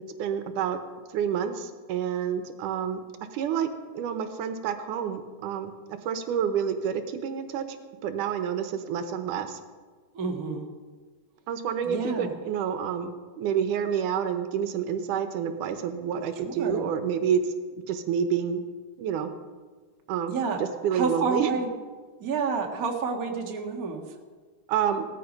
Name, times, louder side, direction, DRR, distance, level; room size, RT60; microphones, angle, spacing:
voice 1, 0.2-0.8 1.1-3.0 3.3-9.6 11.5-17.4 17.9-18.6 19.0-19.3 20.1-20.3 20.6-21.5 24.7-25.1, right 8 dB, 85° right, 8 dB, 2.6 m, -28 dB
voice 2, 10.1-10.7 11.8-12.3 16.4-16.8 20.3-20.6 20.9-21.7 22.2-24.0, right 5 dB, 35° right, 2 dB, 1.7 m, -29 dB
18.0 x 13.5 x 5.4 m, 1.5 s
omnidirectional pair, 3.6 m